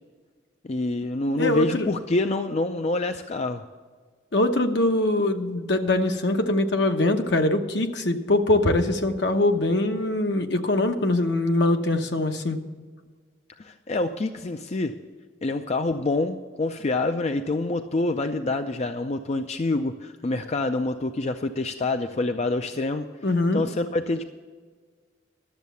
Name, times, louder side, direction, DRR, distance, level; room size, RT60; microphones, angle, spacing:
voice 1, 0.6-3.6 13.6-14.9 15.4-23.1 23.5-24.2, left 2 dB, 35° left, 7 dB, 0.4 m, -26 dB
voice 2, 1.4-1.9 4.3-12.6 23.2-23.6, left 2 dB, 65° left, 6 dB, 1.0 m, -23 dB
12.5 x 7.3 x 6.9 m, 1.5 s
head